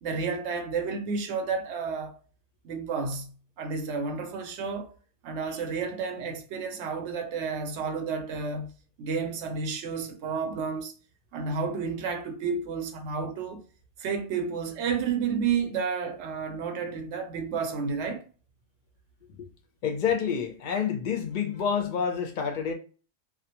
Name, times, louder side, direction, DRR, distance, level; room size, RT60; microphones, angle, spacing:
voice 1, 0.0-2.2 2.6-3.3 3.6-4.9 5.2-8.7 9.0-10.9 11.3-13.6 14.0-18.2, right 5 dB, 70° right, 0.8 m, -31 dB
voice 2, 19.8-22.7, left 7 dB, 55° left, 0.6 m, -28 dB
2.4 x 2.1 x 2.8 m
omnidirectional pair, 1.3 m